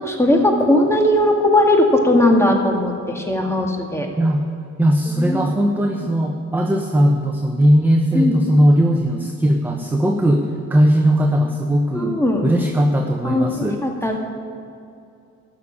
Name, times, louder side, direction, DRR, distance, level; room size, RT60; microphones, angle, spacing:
voice 1, 0.0-4.1 5.1-5.4 8.1-8.4 11.9-12.5 13.2-14.2, left 1 dB, 10° left, 1 dB, 2.2 m, -18 dB
voice 2, 4.2-4.5 4.8-13.8, equal, 5° right, 3 dB, 0.9 m, -18 dB
12.5 x 6.9 x 9.8 m, 2.5 s
cardioid pair, 90°, 30 cm